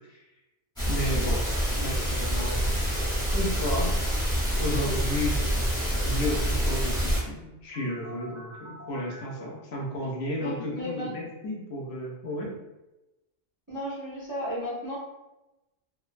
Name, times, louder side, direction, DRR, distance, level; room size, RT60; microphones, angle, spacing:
sound 1, 0.8-7.2, equal, 5° left, 0.7 m, -26 dB
voice 1, 0.9-1.4 1.8-2.7 3.3-4.1 4.6-5.6 6.0-12.5, left 1 dB, 65° left, -2 dB, 0.8 m, -33 dB
sound 2, 2.4-3.4 5.4-6.4 7.7-9.5, equal, 50° left, 0.3 m, -45 dB
voice 2, 10.4-11.1 13.7-15.0, equal, 25° right, -8 dB, 0.4 m, -34 dB
2.5 x 2.2 x 2.4 m, 0.99 s
omnidirectional pair, 1.2 m